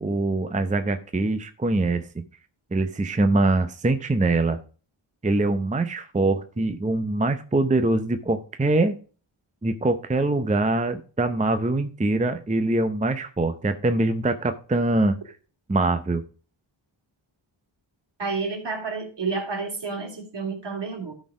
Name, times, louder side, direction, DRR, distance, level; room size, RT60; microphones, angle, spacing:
voice 1, 0.0-2.1 2.7-4.6 5.2-9.0 9.6-15.2 15.7-16.2, right 2 dB, 15° right, 9 dB, 0.6 m, -23 dB
voice 2, 18.2-21.1, right 4 dB, 60° right, 3 dB, 2.6 m, -30 dB
13.0 x 4.3 x 4.8 m, 0.37 s
wide cardioid pair, 100°, 47 cm